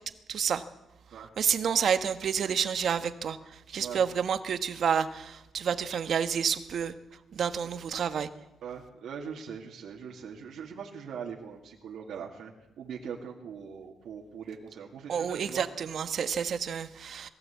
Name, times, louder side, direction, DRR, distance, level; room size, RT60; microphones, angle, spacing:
voice 1, 0.3-0.6 1.4-3.4 3.7-6.9 7.3-8.3 15.1-17.3, right 7 dB, 55° right, 10 dB, 1.3 m, -29 dB
voice 2, 8.6-15.7, right 7 dB, 75° right, -1 dB, 2.6 m, -41 dB
22.0 x 15.5 x 8.4 m, 0.99 s
cardioid pair, 130°, 0 cm